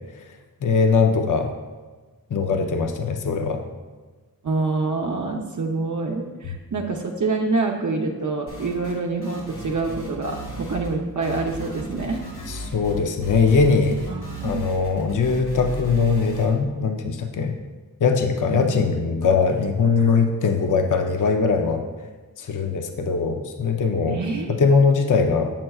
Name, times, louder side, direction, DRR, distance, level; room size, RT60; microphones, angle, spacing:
voice 1, 0.6-1.5 2.3-3.6 12.5-14.0 14.4-17.5 18.0-21.8 22.4-24.2 24.6-25.5, left 5 dB, 55° left, 4 dB, 0.6 m, -21 dB
voice 2, 4.4-12.2 14.1-14.6 18.5-18.7 24.1-24.6, right 3 dB, 55° right, 1 dB, 0.7 m, -26 dB
sound 1, 8.5-9.0 9.2-10.9 11.2-16.5, right 1 dB, 85° left, 2.1 m, -35 dB
7.6 x 7.3 x 2.3 m, 1.3 s
wide cardioid pair, 110°, 36 cm